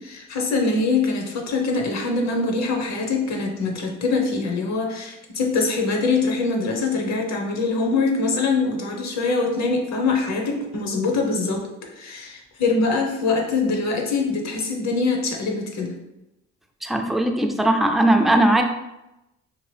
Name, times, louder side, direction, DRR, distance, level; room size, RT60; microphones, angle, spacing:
voice 1, 0.0-11.7 12.0-15.9, left 3 dB, 65° left, 1 dB, 0.8 m, -23 dB
voice 2, 16.8-18.6, right 1 dB, ahead, 3 dB, 0.3 m, -19 dB
2.8 x 2.5 x 3.2 m, 0.93 s
cardioid pair, 90°, 30 cm